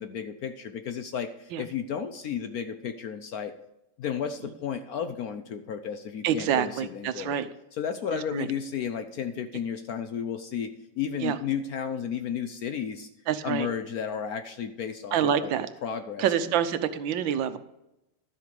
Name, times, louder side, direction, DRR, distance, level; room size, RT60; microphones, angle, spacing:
voice 1, 0.0-3.5 4.0-7.4 7.7-13.1 13.4-15.5 15.8-16.2, left 8 dB, 65° left, 9 dB, 1.0 m, -33 dB
voice 2, 6.2-7.5 8.3-8.5 11.2-11.4 13.3-13.7 15.1-15.7 16.2-17.6, right 9 dB, 80° right, 11 dB, 1.5 m, -26 dB
11.5 x 7.7 x 5.3 m, 0.88 s
omnidirectional pair, 2.1 m